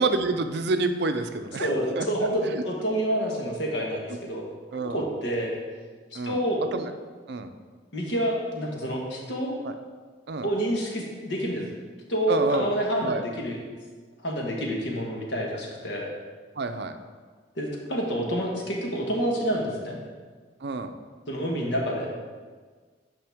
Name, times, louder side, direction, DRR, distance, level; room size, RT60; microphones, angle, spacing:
voice 1, 0.0-2.6 4.7-5.0 6.1-6.4 6.7-6.9 7.3-7.5 9.6-9.8 10.3-10.5 12.3-12.7 13.0-13.2 16.6-16.9 20.6-20.9, right 3 dB, 60° right, 8 dB, 0.5 m, -28 dB
voice 2, 1.6-4.4 4.7-5.5 6.1-6.6 7.9-9.5 10.4-11.7 12.1-13.6 14.2-16.1 17.6-20.0 21.3-22.1, equal, 75° left, -1 dB, 1.5 m, -28 dB
8.7 x 5.4 x 3.5 m, 1.5 s
head